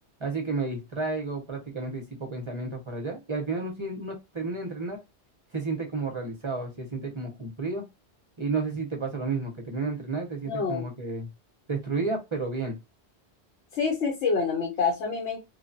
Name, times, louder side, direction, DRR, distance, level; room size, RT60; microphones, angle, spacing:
voice 1, 0.2-5.0 5.5-7.8 8.4-11.3 11.7-12.8, right 3 dB, 35° right, 2 dB, 0.6 m, -31 dB
voice 2, 10.4-10.8 13.7-15.4, left 5 dB, 80° left, 1 dB, 1.1 m, -27 dB
3.1 x 2.2 x 2.5 m, 0.23 s
omnidirectional pair, 1.2 m